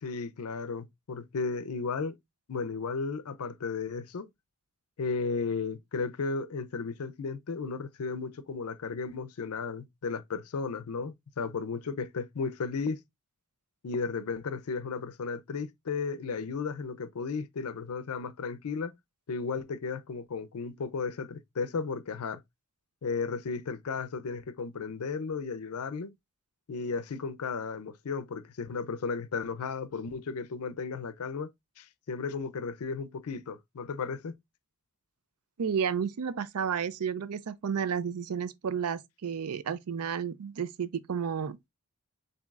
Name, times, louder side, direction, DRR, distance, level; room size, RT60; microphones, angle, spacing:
voice 1, 0.0-2.2 2.5-4.3 5.0-13.0 13.8-18.9 19.3-22.4 23.0-26.1 26.7-31.5 31.8-34.4, left 4 dB, 75° left, 0.5 m, -34 dB
voice 2, 35.6-41.7, right 7 dB, 85° right, 0.5 m, -32 dB
7.0 x 2.8 x 2.3 m
head